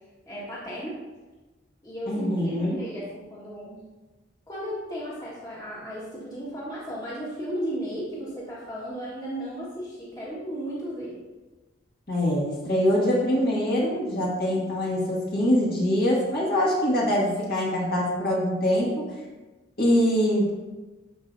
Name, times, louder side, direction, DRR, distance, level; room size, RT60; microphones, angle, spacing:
voice 1, 0.3-1.0 1.8-3.8 4.5-11.2, equal, 20° left, -7 dB, 1.7 m, -35 dB
voice 2, 2.1-2.8 12.1-19.0 19.8-20.5, equal, 50° left, -5 dB, 2.0 m, -24 dB
12.0 x 5.0 x 2.7 m, 1.2 s
head